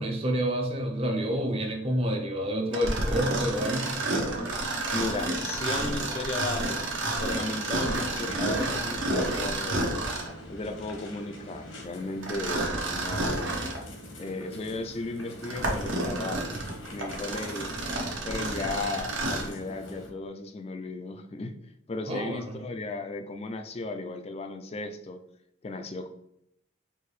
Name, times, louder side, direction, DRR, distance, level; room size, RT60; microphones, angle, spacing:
voice 1, 0.0-3.9 22.1-22.6, equal, 30° right, 2 dB, 0.6 m, -28 dB
Mechanisms, 2.7-10.4 12.2-13.8 14.4-14.5 15.2-19.6, right 2 dB, 65° right, 0.9 m, -30 dB
voice 2, 4.9-6.9 7.2-9.9 10.5-13.6 14.2-16.4 16.9-17.7 18.2-21.6 21.9-25.2 25.6-26.1, left 3 dB, 30° left, 6 dB, 0.3 m, -35 dB
sound 1, 7.9-20.1, equal, 80° left, 1.1 m, -44 dB
4.6 x 2.6 x 3.2 m, 0.76 s
head